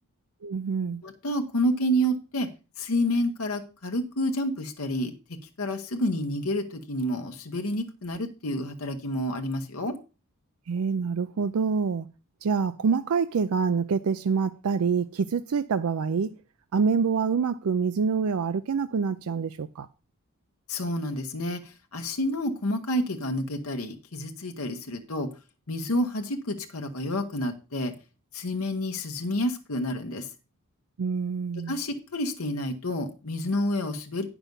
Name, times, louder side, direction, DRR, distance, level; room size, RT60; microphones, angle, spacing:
voice 1, 0.4-1.0 10.7-12.1 12.4-16.3 16.7-19.9 31.0-31.8, right 5 dB, 80° right, 0.4 m, -26 dB
voice 2, 1.0-2.5 2.8-5.1 5.6-10.0 20.7-25.3 25.7-27.9 28.3-30.3 31.7-34.3, equal, 75° left, 1.1 m, -29 dB
9.4 x 6.0 x 5.3 m
head